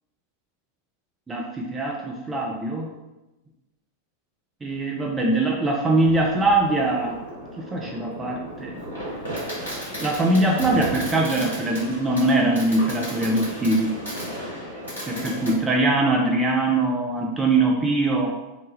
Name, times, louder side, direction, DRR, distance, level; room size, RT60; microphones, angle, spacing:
voice 1, 1.3-2.9 4.6-7.2 7.6-8.8 10.0-13.9 15.1-18.4, right 2 dB, 15° right, -2 dB, 0.3 m, -22 dB
Fireworks, 6.0-15.5, equal, 85° left, 1.3 m, -34 dB
2.9 x 2.1 x 3.1 m, 1.0 s
figure-of-eight pair, 90°, 0 cm